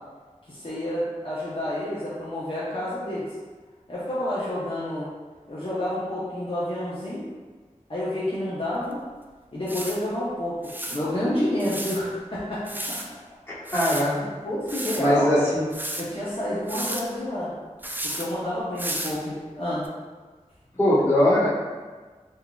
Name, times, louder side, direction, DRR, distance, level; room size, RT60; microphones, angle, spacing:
voice 1, 0.5-3.3 3.9-5.1 5.5-7.2 7.9-9.0 9.5-13.1 14.1-15.3 16.0-17.5 18.0-19.9, left 1 dB, 45° left, -10 dB, 0.7 m, -29 dB
sound 1, 8.9-9.0 9.7-10.0 10.6-11.0 11.6-12.0 12.7-13.1 13.7-14.1 14.7-15.0 15.7-16.0 16.7-17.0 17.8-18.3 18.8-19.2 19.8-19.9, right 1 dB, 15° right, 0.4 m, -32 dB
voice 2, 13.5-14.2 15.0-15.6 20.8-21.5, left 1 dB, 15° left, -10 dB, 1.4 m, -21 dB
3.9 x 2.6 x 2.3 m, 1.4 s
wide cardioid pair, 40°, 13 cm